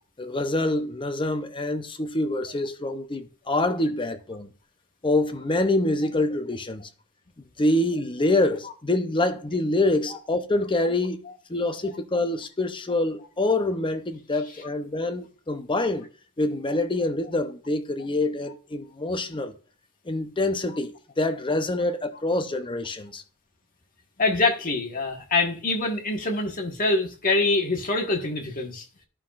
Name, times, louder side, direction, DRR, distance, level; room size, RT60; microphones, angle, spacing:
voice 1, 0.2-4.5 5.0-6.9 7.6-11.2 11.5-16.1 16.4-19.5 20.1-23.2, left 2 dB, 20° left, 0.7 m, -26 dB
voice 2, 24.2-28.8, left 3 dB, 40° left, 1.5 m, -25 dB
13.5 x 5.7 x 2.5 m
head